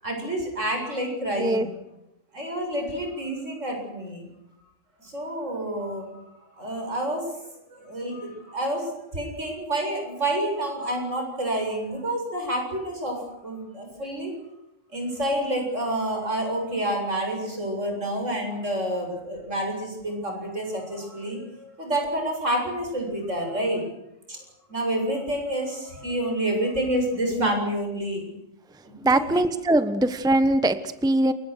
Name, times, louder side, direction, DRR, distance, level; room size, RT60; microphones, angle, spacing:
voice 1, 0.0-1.7 2.3-4.3 5.0-6.2 6.6-7.2 7.7-14.3 14.9-23.8 24.3-24.4 24.7-28.3 28.8-29.4, right 1 dB, 70° right, 2 dB, 8.4 m, -28 dB
voice 2, 29.0-31.3, right 1 dB, 5° right, 11 dB, 1.0 m, -22 dB
28.5 x 24.0 x 6.5 m, 0.84 s
omnidirectional pair, 1.3 m